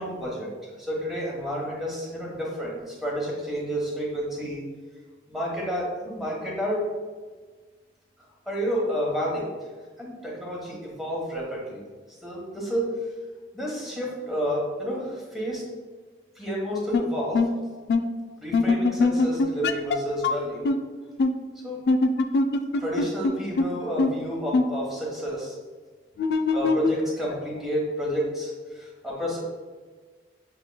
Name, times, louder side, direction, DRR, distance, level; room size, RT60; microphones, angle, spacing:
voice 1, 0.0-4.6 5.3-6.9 8.5-9.5 10.0-11.8 12.2-13.0 13.5-15.6 16.3-17.4 18.4-20.7 21.6-21.8 22.8-25.5 26.5-29.4, equal, ahead, -4 dB, 1.1 m, -30 dB
sound 1, 16.9-17.0 17.3-17.5 17.9-18.0 18.5-20.0 20.2-20.3 20.6-20.7 21.2-21.3 21.9-23.3 23.6-23.7 24.0-24.1 24.5-24.6 26.2-27.6, left 3 dB, 65° left, 0.3 m, -21 dB
7.2 x 2.9 x 2.3 m, 1.4 s
head